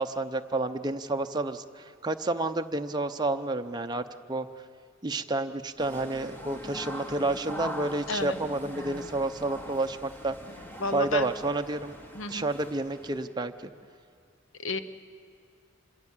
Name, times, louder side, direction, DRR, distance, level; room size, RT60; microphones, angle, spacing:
voice 1, 0.0-4.0 4.3-4.5 5.0-10.4 10.9-11.9 12.3-13.7, right 2 dB, 20° right, 6 dB, 0.7 m, -30 dB
sound 1, 5.8-13.3, equal, 10° left, 1.5 m, -42 dB
voice 2, 10.8-11.3 12.1-12.5 14.6-14.8, left 3 dB, 75° left, 11 dB, 0.8 m, -31 dB
26.5 x 22.0 x 7.3 m, 2.2 s
head